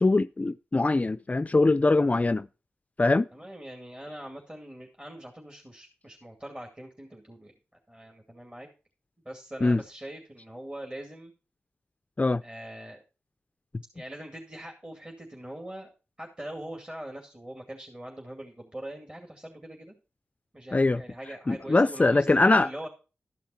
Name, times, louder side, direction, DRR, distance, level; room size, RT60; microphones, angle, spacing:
voice 1, 0.0-2.5 3.0-3.3 9.6-9.8 12.2-12.4 20.7-21.0 21.5-22.7, left 2 dB, 30° left, 0.4 m, -22 dB
voice 2, 3.3-7.6 7.9-8.7 9.2-11.3 12.4-13.0 13.9-15.9 16.2-19.9 20.5-22.9, right 1 dB, 20° right, 2.4 m, -42 dB
12.5 x 5.7 x 4.3 m
cardioid pair, 40°, 5 cm